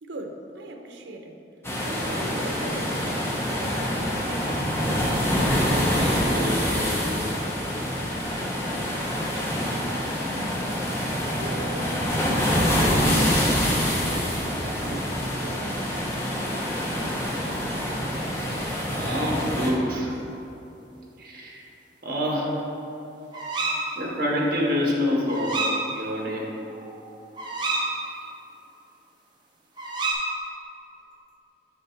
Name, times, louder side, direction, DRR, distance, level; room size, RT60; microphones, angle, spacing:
voice 1, 0.0-1.4 1.8-4.4 11.4-12.2 12.8-14.4 14.8-16.2 23.5-24.0, right 2 dB, 75° right, 4 dB, 0.6 m, -39 dB
sound 1, 1.6-19.7, equal, 15° left, 0.8 m, -26 dB
voice 2, 5.9-7.1 17.5-17.6 18.1-20.2 21.2-21.6 22.0-22.6 23.9-25.6 25.9-26.5, equal, 50° right, -3 dB, 1.3 m, -28 dB
sound 2, 22.3-22.9 23.3-23.8 25.3-25.8 26.2-26.3 26.6-27.9 29.8-30.1, right 3 dB, 25° right, 0.8 m, -29 dB
7.6 x 5.8 x 3.3 m, 2.9 s
head